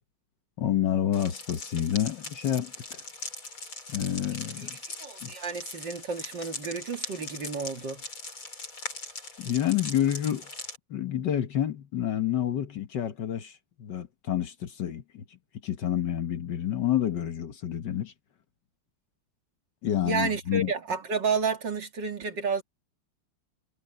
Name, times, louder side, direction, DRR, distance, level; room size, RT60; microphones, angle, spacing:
voice 1, 0.6-3.0 3.9-4.8 5.2-5.3 9.4-10.5 10.9-15.2 15.6-18.1 19.8-20.7, left 10 dB, 60° left, 1.7 m, -29 dB
sound 1, 1.1-10.8, left 3 dB, 75° left, 6.7 m, -40 dB
voice 2, 4.6-8.0 20.0-22.6, right 4 dB, 60° right, 2.9 m, -31 dB
omnidirectional pair, 2.3 m